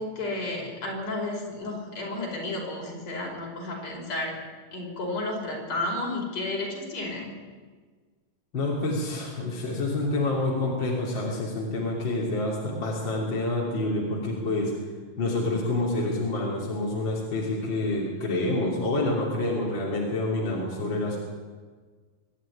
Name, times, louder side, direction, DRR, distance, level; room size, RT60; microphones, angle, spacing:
voice 1, 0.0-4.4 4.7-7.4, left 2 dB, 50° left, -1 dB, 6.1 m, -32 dB
voice 2, 8.5-14.7 15.2-21.2, left 2 dB, 35° left, -3 dB, 3.5 m, -27 dB
24.5 x 11.0 x 9.9 m, 1.5 s
omnidirectional pair, 3.8 m